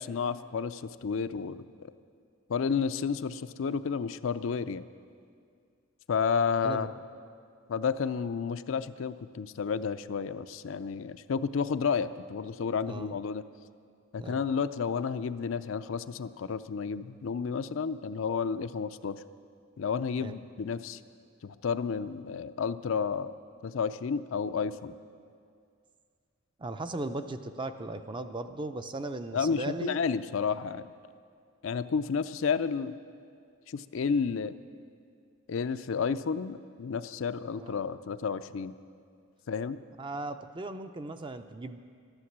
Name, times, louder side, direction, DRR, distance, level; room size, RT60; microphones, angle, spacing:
voice 1, 0.0-1.7 2.5-4.8 6.1-6.9 7.7-13.4 14.1-19.2 19.8-21.0 21.4-23.3 23.6-24.9 29.3-30.8 31.6-33.0 33.7-34.5 35.5-38.7 39.5-39.8, left 6 dB, 70° left, 12 dB, 0.4 m, -31 dB
voice 2, 26.6-30.0 37.6-37.8 40.0-41.8, right 2 dB, 25° right, 9 dB, 0.5 m, -37 dB
13.0 x 11.5 x 7.4 m, 2.2 s
head